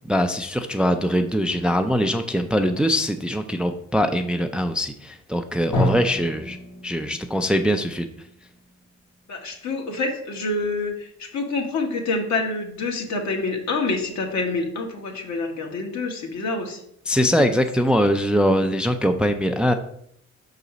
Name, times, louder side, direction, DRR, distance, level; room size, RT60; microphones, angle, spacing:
voice 1, 0.0-6.6 6.8-8.1 17.1-19.7, equal, 5° right, 7 dB, 0.4 m, -22 dB
Drum, 5.7-9.4, left 1 dB, 85° left, 2.1 m, -30 dB
voice 2, 9.3-16.8, left 3 dB, 65° left, 2 dB, 1.5 m, -27 dB
5.6 x 4.0 x 4.9 m, 0.70 s
cardioid pair, 90°, 30 cm